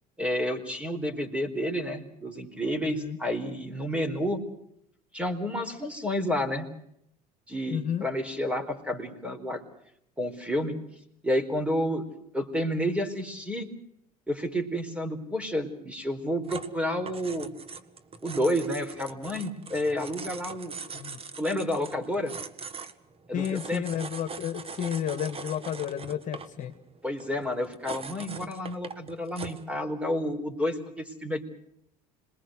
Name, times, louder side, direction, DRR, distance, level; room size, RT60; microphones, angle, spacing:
voice 1, 0.2-4.4 5.1-6.7 7.5-9.6 10.2-10.8 11.2-12.1 12.3-13.7 14.3-17.5 18.2-20.7 21.4-22.3 23.3-23.8 27.0-31.4, equal, 5° right, 8 dB, 4.3 m, -30 dB
voice 2, 2.8-3.2 7.7-8.0 20.9-21.2 23.3-26.7, left 9 dB, 40° left, 7 dB, 2.0 m, -32 dB
sound 1, 16.4-29.7, right 5 dB, 30° right, 1.6 m, -42 dB
27.0 x 21.5 x 6.4 m, 0.76 s
hypercardioid pair, 85°, 19 cm